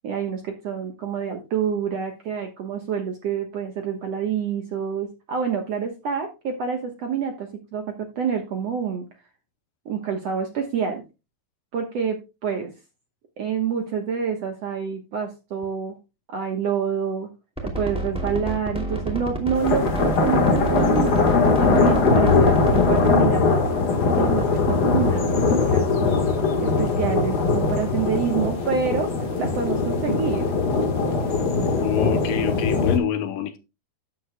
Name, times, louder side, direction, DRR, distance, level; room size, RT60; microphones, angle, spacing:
voice 1, 0.0-9.1 9.9-11.0 11.7-12.7 13.4-16.0 16.3-17.3 17.6-23.7 24.2-25.9 26.6-30.4, right 7 dB, 65° right, 1.7 m, -27 dB
sound 1, 17.6-23.1, right 1 dB, ahead, 1.6 m, -29 dB
sound 2, 19.6-33.0, left 4 dB, 90° left, 0.8 m, -21 dB
voice 2, 31.7-33.6, left 10 dB, 75° left, 2.3 m, -26 dB
13.0 x 8.8 x 2.2 m
omnidirectional pair, 4.4 m